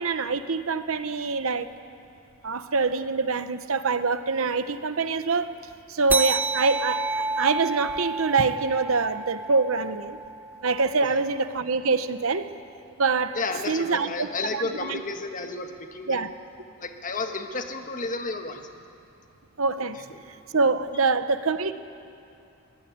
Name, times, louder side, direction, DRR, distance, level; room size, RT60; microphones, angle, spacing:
voice 1, 0.0-1.7 2.4-5.6 5.9-10.2 10.6-12.5 13.0-13.4 13.7-14.3 14.5-15.0 16.1-16.3 19.6-20.0 20.5-21.7, right 4 dB, 65° right, 11 dB, 0.9 m, -25 dB
sound 1, 6.1-11.0, right 3 dB, 10° right, 0.5 m, -30 dB
voice 2, 13.3-16.2 16.8-18.6, left 3 dB, 35° left, 5 dB, 1.5 m, -32 dB
23.0 x 16.5 x 9.4 m, 2.7 s
head